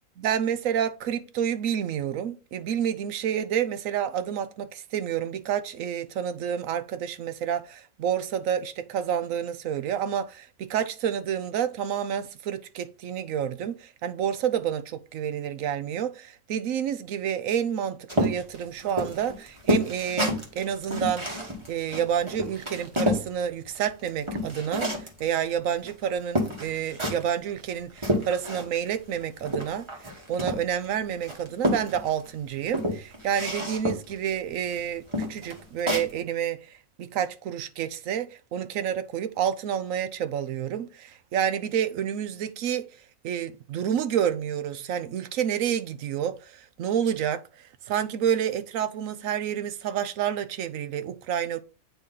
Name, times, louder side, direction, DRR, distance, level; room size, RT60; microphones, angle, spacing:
voice 1, 0.2-21.3 21.7-29.9 30.3-42.9 43.2-47.4 47.9-51.6, right 9 dB, 70° right, 1.0 m, -29 dB
sound 1, 18.1-23.3 23.7-25.2 25.9-26.0 26.4-27.3 27.7-28.9 29.1-30.9 31.2-32.3 32.7-34.2 34.6-34.7 35.1-36.1, equal, 20° right, 1.3 m, -29 dB
9.0 x 3.0 x 3.8 m
omnidirectional pair, 1.6 m